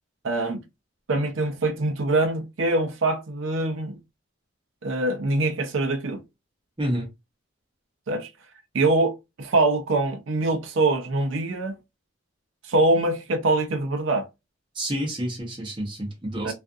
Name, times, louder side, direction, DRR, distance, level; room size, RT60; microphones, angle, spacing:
voice 1, 0.2-0.6 1.1-4.0 4.8-6.2 8.1-8.3 8.7-11.8 12.6-14.3 16.4-16.5, right 2 dB, 70° right, 0.6 m, -24 dB
voice 2, 6.8-7.1 14.7-16.5, equal, 25° right, 0.8 m, -29 dB
2.4 x 2.4 x 2.5 m
head